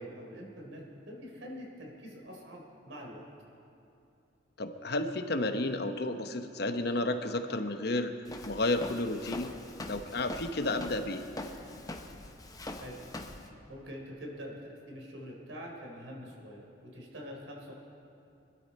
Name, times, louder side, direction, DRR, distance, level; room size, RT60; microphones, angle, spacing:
voice 1, 0.0-3.2 12.8-13.0 13.7-17.7, equal, 85° right, -1 dB, 3.6 m, -45 dB
voice 2, 4.6-8.1 8.4-9.5 9.9-11.2, left 2 dB, 55° left, 7 dB, 0.9 m, -31 dB
Walk footsteps, 8.3-13.5, left 1 dB, 20° left, 0.9 m, -43 dB
24.0 x 12.5 x 4.3 m, 2.7 s
head